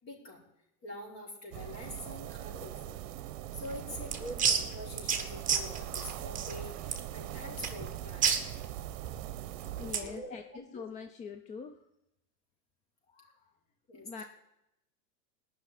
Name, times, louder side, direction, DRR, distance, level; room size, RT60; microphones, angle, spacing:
voice 1, 0.0-0.4 0.8-3.0 3.5-8.4 9.8-10.8 13.9-14.3, left 1 dB, 30° left, -2 dB, 4.9 m, -45 dB
sound 1, 1.5-9.9, right 13 dB, 55° right, 1.0 m, -42 dB
sound 2, 3.6-10.2, right 7 dB, 15° right, 1.6 m, -33 dB
voice 2, 9.7-10.4 10.7-11.8 13.1-13.5 13.9-14.2, left 5 dB, 15° left, 7 dB, 0.5 m, -44 dB
18.5 x 6.3 x 10.0 m, 0.86 s
hypercardioid pair, 120°, 48 cm